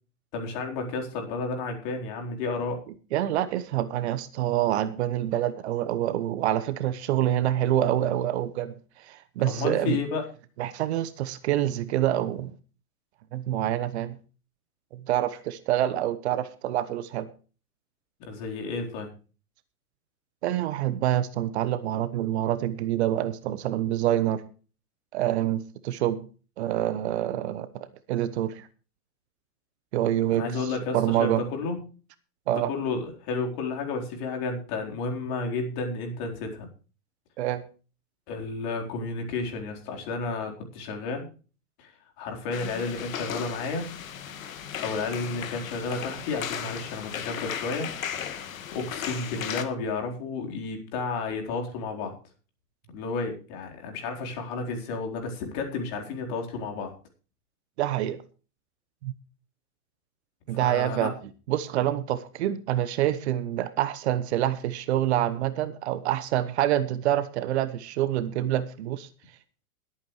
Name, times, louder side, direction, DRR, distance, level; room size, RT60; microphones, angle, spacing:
voice 1, 0.3-2.8 9.5-10.2 18.2-19.1 30.3-31.8 32.5-36.7 38.3-41.3 41.8-41.9 42.2-43.9 44.8-47.9 48.7-52.2 52.9-56.9 60.5-61.1, left 3 dB, 40° left, 2 dB, 4.2 m, -32 dB
voice 2, 3.1-10.0 10.6-12.5 13.3-14.2 14.9-17.3 20.4-24.4 25.1-26.3 26.6-27.7 28.1-28.7 29.9-31.4 32.5-32.7 37.4-37.6 57.8-58.2 59.0-59.1 60.5-61.1 61.5-69.1, right 12 dB, 45° right, 14 dB, 1.1 m, -26 dB
sound 1, 42.5-49.6, left 8 dB, 60° left, 1.9 m, -36 dB
21.5 x 8.8 x 3.2 m, 0.37 s
figure-of-eight pair, 110°, 45 cm